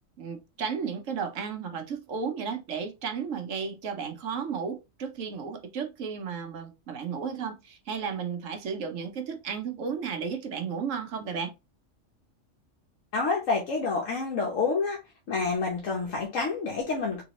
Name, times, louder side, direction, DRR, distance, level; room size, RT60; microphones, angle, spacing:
voice 1, 0.2-11.5, right 6 dB, 75° right, 1.2 m, -33 dB
voice 2, 13.1-15.0 15.3-17.2, left 4 dB, 80° left, 1.4 m, -28 dB
3.9 x 3.3 x 2.9 m
omnidirectional pair, 1.3 m